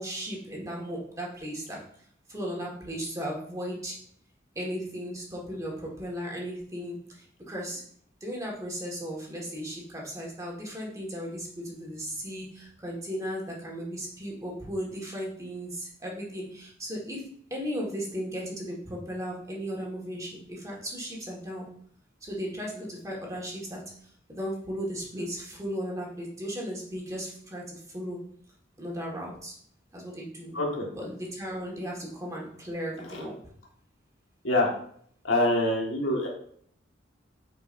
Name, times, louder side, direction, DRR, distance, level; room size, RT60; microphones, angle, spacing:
voice 1, 0.0-1.8 2.3-4.0 4.5-7.8 8.2-21.7 22.2-23.8 24.3-28.2 28.8-29.5 29.9-30.5 31.0-33.3, equal, 15° right, -2 dB, 1.5 m, -36 dB
voice 2, 30.5-30.9 33.1-33.2 34.4-34.7 35.2-36.3, left 1 dB, 85° left, -1 dB, 1.6 m, -25 dB
8.9 x 4.6 x 2.5 m, 0.62 s
head